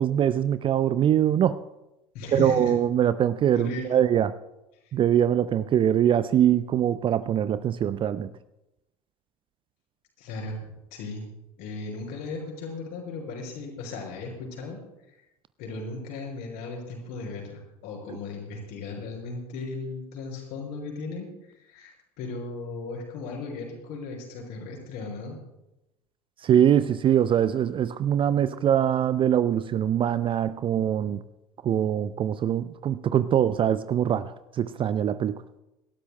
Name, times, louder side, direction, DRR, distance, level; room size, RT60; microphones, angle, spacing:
voice 1, 0.0-1.6 2.3-4.3 4.9-8.3 26.4-31.2 31.6-35.4, right 10 dB, 25° right, 15 dB, 0.5 m, -23 dB
voice 2, 2.1-2.7 3.5-4.0 10.2-11.3 11.6-14.8 15.6-21.3 21.7-25.4, left 3 dB, 50° left, 0 dB, 5.5 m, -36 dB
27.0 x 13.0 x 2.2 m, 0.93 s
figure-of-eight pair, 75°, 20 cm